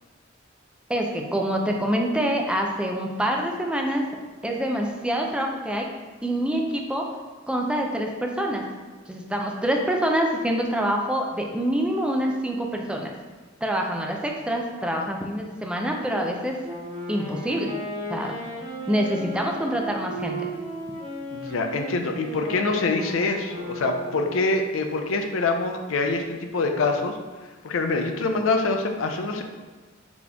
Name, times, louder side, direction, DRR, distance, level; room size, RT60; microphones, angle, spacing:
voice 1, 0.9-4.1 4.4-5.9 6.2-7.1 7.5-8.6 9.1-13.1 13.6-16.6 17.1-17.7 18.1-18.4 18.9-20.5, equal, 5° right, 1 dB, 0.4 m, -26 dB
Wind instrument woodwind instrument, 16.6-24.5, right 1 dB, 30° right, 1.2 m, -35 dB
voice 2, 21.3-26.2 26.5-27.2 27.6-29.4, left 3 dB, 85° left, 5 dB, 0.5 m, -25 dB
4.1 x 2.9 x 3.4 m, 1.4 s
head